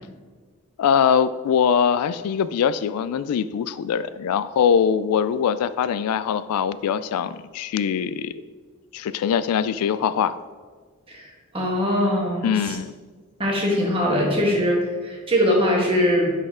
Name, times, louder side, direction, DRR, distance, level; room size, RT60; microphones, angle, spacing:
voice 1, 0.8-8.3 8.9-10.3 12.4-12.9, left 7 dB, 80° left, 16 dB, 0.3 m, -22 dB
voice 2, 11.5-12.8 13.4-16.3, equal, 25° right, -2 dB, 1.6 m, -21 dB
10.5 x 4.2 x 3.7 m, 1.5 s
head